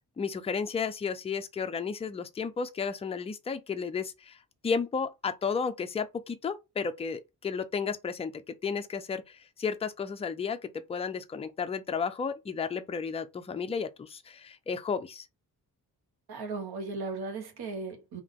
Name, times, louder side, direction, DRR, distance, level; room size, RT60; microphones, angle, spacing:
voice 1, 0.2-4.4 4.6-15.3, left 5 dB, 15° left, 0.3 m, -33 dB
voice 2, 16.3-18.2, right 3 dB, 75° right, 1.3 m, -36 dB
3.7 x 2.8 x 3.6 m
wide cardioid pair, 150°, 38 cm